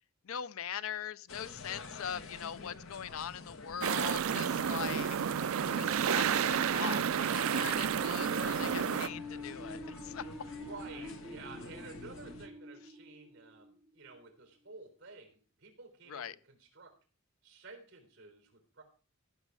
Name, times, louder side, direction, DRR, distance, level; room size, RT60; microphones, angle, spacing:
voice 1, 0.2-5.2 5.7-7.0 7.3-10.3 16.1-16.4, left 8 dB, 85° left, 0.5 m, -41 dB
sound 1, 1.3-12.5, left 3 dB, 70° left, 1.2 m, -48 dB
sound 2, 3.8-9.1, right 8 dB, 85° right, 0.4 m, -31 dB
sound 3, 7.3-14.2, left 2 dB, 10° right, 0.8 m, -46 dB
voice 2, 10.6-17.0 17.4-18.8, right 4 dB, 55° right, 3.9 m, -52 dB
15.0 x 6.5 x 4.8 m
head